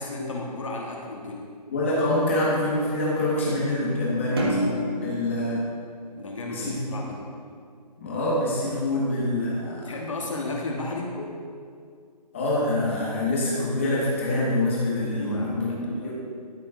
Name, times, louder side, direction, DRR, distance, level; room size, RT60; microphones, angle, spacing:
voice 1, 0.0-1.5 6.2-7.3 9.8-11.2 15.1-16.1, left 2 dB, 50° left, -1 dB, 1.0 m, -33 dB
voice 2, 1.7-5.6 6.5-6.9 8.0-9.9 11.2-11.3 12.3-16.1, left 1 dB, 20° left, -6 dB, 1.1 m, -26 dB
sound 1, 4.4-6.9, equal, 35° right, 0.8 m, -30 dB
12.5 x 5.0 x 2.3 m, 2.3 s
hypercardioid pair, 180°, 21 cm